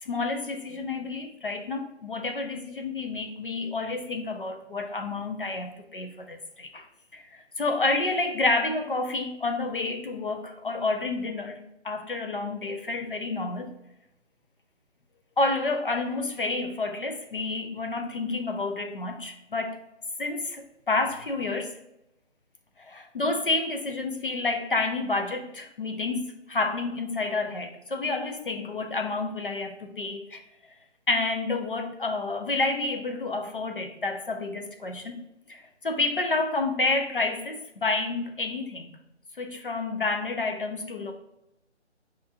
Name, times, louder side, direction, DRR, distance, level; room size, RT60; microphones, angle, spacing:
voice 1, 0.0-6.8 7.1-13.7 15.4-19.8 20.2-21.8 22.8-30.4 31.1-35.2 35.5-38.9 39.3-41.1, left 3 dB, 50° left, 5 dB, 0.5 m, -29 dB
5.5 x 2.4 x 2.7 m, 0.86 s
hypercardioid pair, 170°, 35 cm